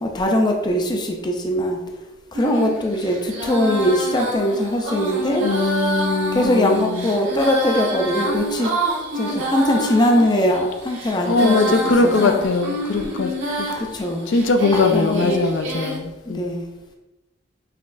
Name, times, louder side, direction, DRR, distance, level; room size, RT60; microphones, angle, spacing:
voice 1, 0.0-1.8 2.3-5.5 6.3-8.7 9.1-12.4 13.8-14.3 14.7-15.5 16.3-16.6, left 1 dB, 25° left, 2 dB, 0.5 m, -21 dB
Female singing, 2.3-16.0, right 1 dB, 80° right, 1.2 m, -28 dB
voice 2, 5.4-7.1 11.3-13.3 13.6-13.7 14.3-16.4, left 3 dB, 75° left, 6 dB, 0.5 m, -20 dB
5.7 x 3.0 x 2.5 m, 1.0 s
head